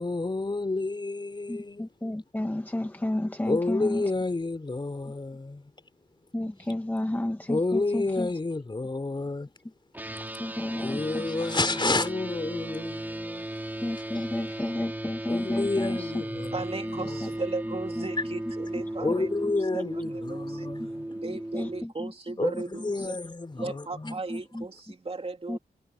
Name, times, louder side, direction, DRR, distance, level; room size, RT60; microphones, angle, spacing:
voice 1, 0.0-1.9 3.5-5.7 7.5-9.5 10.6-13.5 15.3-16.5 17.0-17.2 19.0-21.1 22.4-24.1, left 3 dB, 25° left, 3.7 m, -30 dB
voice 2, 1.5-4.1 6.3-8.3 10.4-11.5 11.8-12.0 13.8-16.1 16.8-17.3 17.6-18.4 19.1-19.3 20.8-20.9 21.2-22.9 24.0-24.7 25.5-25.6, left 1 dB, 10° left, 1.2 m, -32 dB
sound 1, 9.9-21.8, right 1 dB, 10° right, 2.4 m, -36 dB
voice 3, 16.5-19.3 19.7-19.8 20.1-20.7 21.1-23.2 23.6-25.6, right 3 dB, 35° right, 3.1 m, -36 dB
wide cardioid pair, 115°, 18 cm